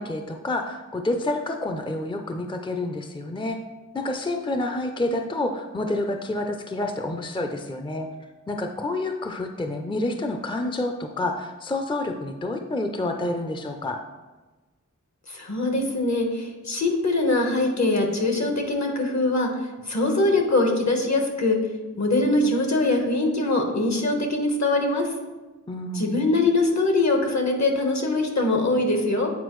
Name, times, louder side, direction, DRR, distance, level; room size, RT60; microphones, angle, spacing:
voice 1, 0.0-3.6 3.9-8.1 8.5-14.0 25.7-26.3, left 2 dB, 15° left, 5 dB, 0.5 m, -28 dB
voice 2, 15.3-19.5 19.9-21.6 22.0-25.1 25.9-29.3, left 2 dB, 60° left, 2 dB, 1.2 m, -22 dB
8.2 x 4.4 x 3.1 m, 1.2 s
wide cardioid pair, 50°, 30 cm